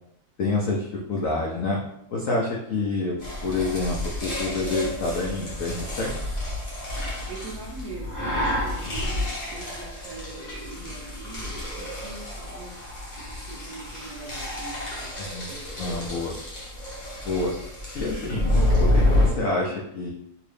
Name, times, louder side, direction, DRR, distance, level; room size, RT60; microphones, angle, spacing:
voice 1, 0.4-1.8 2.1-3.2 3.4-6.2 15.2-15.5 15.8-16.3 17.2-17.5 17.9-18.5 18.8-20.1, left 3 dB, 90° left, -2 dB, 0.7 m, -27 dB
sound 1, 3.2-19.3, left 1 dB, 35° left, 0.8 m, -28 dB
voice 2, 7.0-12.9 13.5-16.3, right 3 dB, 70° right, -2 dB, 0.9 m, -43 dB
3.0 x 2.8 x 3.2 m, 0.74 s
omnidirectional pair, 2.1 m